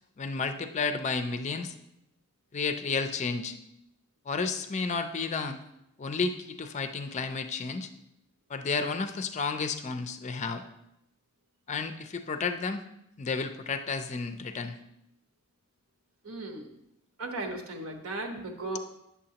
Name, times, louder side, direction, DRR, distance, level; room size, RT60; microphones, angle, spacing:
voice 1, 0.2-1.7 2.5-3.6 4.3-5.6 6.0-7.9 8.5-10.6 11.7-12.8 13.2-14.8 18.6-18.7, left 4 dB, 35° left, 8 dB, 0.4 m, -32 dB
voice 2, 16.2-16.7 17.2-18.8, right 2 dB, 80° right, 4 dB, 1.1 m, -36 dB
8.8 x 6.9 x 2.9 m, 0.82 s
head